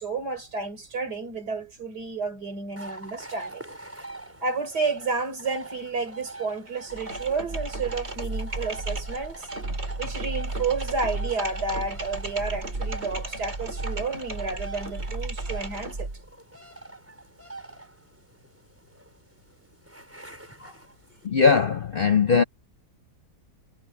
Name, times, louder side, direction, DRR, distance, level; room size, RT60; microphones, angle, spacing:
voice 1, 0.0-3.6 4.4-9.5 10.0-16.1, right 4 dB, 80° right, 4.5 m, -31 dB
sound 1, 2.8-21.3, right 2 dB, 10° right, 4.8 m, -44 dB
sound 2, 6.9-16.2, right 2 dB, 40° right, 3.7 m, -33 dB
voice 2, 21.2-22.4, left 5 dB, 60° left, 0.6 m, -20 dB
omnidirectional pair, 1.7 m